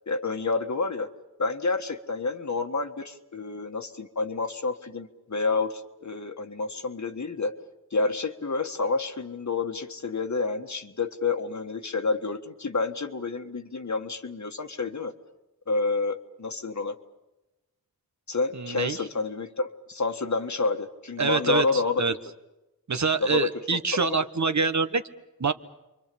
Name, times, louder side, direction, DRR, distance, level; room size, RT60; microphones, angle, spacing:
voice 1, 0.1-1.1 1.4-7.6 7.9-15.1 15.7-17.0 18.3-22.2 23.0-24.2, left 3 dB, 50° left, 6 dB, 1.6 m, -29 dB
voice 2, 18.5-19.0 21.2-21.6 22.0-22.1 22.9-25.0 25.4-25.5, right 4 dB, 50° right, 9 dB, 1.2 m, -25 dB
29.0 x 24.0 x 7.0 m, 1.0 s
wide cardioid pair, 90°, 36 cm